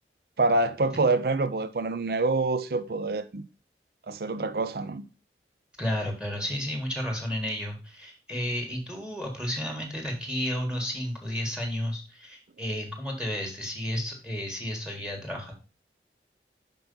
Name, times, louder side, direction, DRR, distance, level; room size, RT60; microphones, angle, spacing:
voice 1, 0.4-3.4 4.1-5.0, right 3 dB, 55° right, 0.5 m, -26 dB
voice 2, 5.8-15.5, equal, 5° right, 1.6 m, -32 dB
5.9 x 5.4 x 5.3 m
head